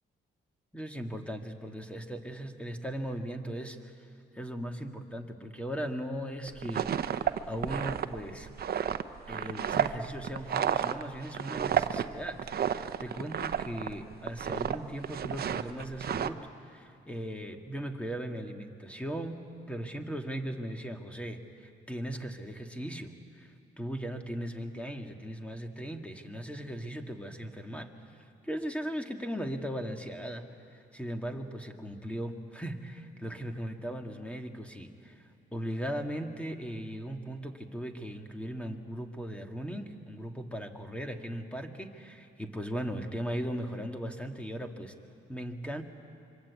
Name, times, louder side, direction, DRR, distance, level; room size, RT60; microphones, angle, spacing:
voice 1, 0.7-3.9 4.3-8.5 9.3-19.4 19.7-23.5 23.8-27.9 28.4-30.4 30.7-35.2 35.5-44.9 45.3-45.8, equal, 5° left, 4 dB, 2.2 m, -38 dB
sound 1, 6.5-13.9 14.2-14.8 15.0-16.3, right 9 dB, 50° right, 0.9 m, -31 dB
26.5 x 23.5 x 8.5 m, 2.5 s
cardioid pair, 90°, 20 cm